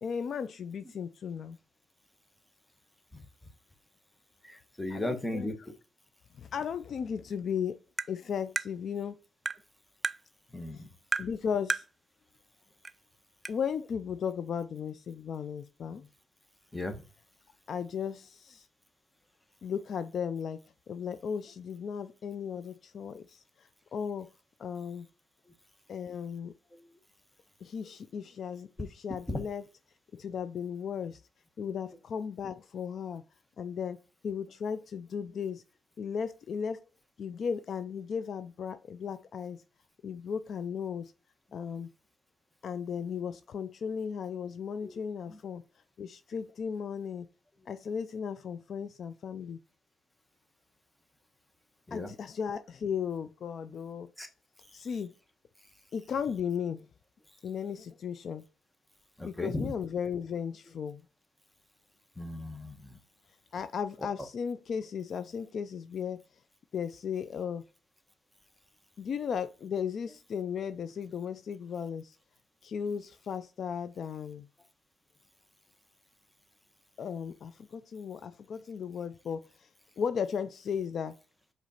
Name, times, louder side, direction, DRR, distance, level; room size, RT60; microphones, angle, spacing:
voice 1, 0.0-1.6 4.9-5.5 6.4-7.8 8.1-9.2 10.7-10.8 11.2-11.8 13.5-16.0 17.7-18.7 19.6-24.3 24.6-25.1 25.9-26.5 27.6-29.7 30.1-31.2 31.6-33.2 33.6-34.0 34.2-35.6 36.0-36.8 37.2-39.6 40.0-41.1 41.5-41.9 42.6-45.6 46.0-47.3 47.7-49.6 51.9-54.1 54.7-55.1 55.9-56.9 57.4-58.4 59.2-61.0 63.5-66.2 66.7-67.6 69.0-72.2 72.6-74.5 77.0-79.7 80.0-81.1, left 7 dB, 55° left, 0.4 m, -36 dB
voice 2, 4.4-5.5 10.5-10.9 16.7-17.0 44.8-45.0 51.9-52.1 54.2-54.3 59.2-59.7 62.2-62.9, left 1 dB, 10° left, 1.1 m, -36 dB
Tap, 8.0-8.1 8.6-8.7 9.4-9.6 10.0-10.2 11.1-11.3 11.7-11.9 12.8-12.9 13.4-13.5, right 4 dB, 25° right, 0.3 m, -31 dB
5.1 x 4.0 x 5.5 m
cardioid pair, 90°, 0 cm